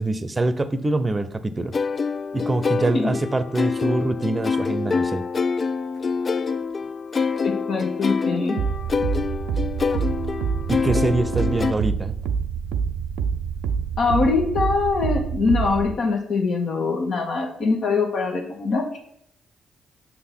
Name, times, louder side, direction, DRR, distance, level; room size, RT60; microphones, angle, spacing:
voice 1, 0.0-1.7 2.3-5.2 10.7-12.1, right 2 dB, 25° right, 12 dB, 0.7 m, -24 dB
sound 1, 1.7-11.7, left 5 dB, 45° left, 0.3 m, -26 dB
voice 2, 7.4-8.6 14.0-18.8, left 4 dB, 65° left, 1 dB, 1.6 m, -23 dB
sound 2, 8.6-15.9, right 6 dB, 80° right, 0.4 m, -26 dB
6.1 x 3.8 x 5.9 m, 0.74 s
hypercardioid pair, 50°, 0 cm